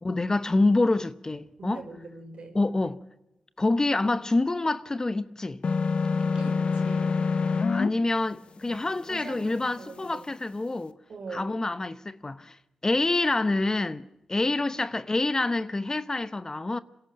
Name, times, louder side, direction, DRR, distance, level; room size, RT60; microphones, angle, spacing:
voice 1, 0.0-1.8 2.5-3.0 3.6-5.6 7.7-10.9 11.3-12.6 12.8-16.8, left 2 dB, 30° left, 0.9 m, -27 dB
voice 2, 1.6-2.6 6.2-7.2 9.1-10.3 11.1-11.5, right 3 dB, 65° right, 5.3 m, -42 dB
sound 1, 5.6-7.9, left 4 dB, 55° left, 1.0 m, -25 dB
26.5 x 12.0 x 8.7 m
cardioid pair, 55°, 2 cm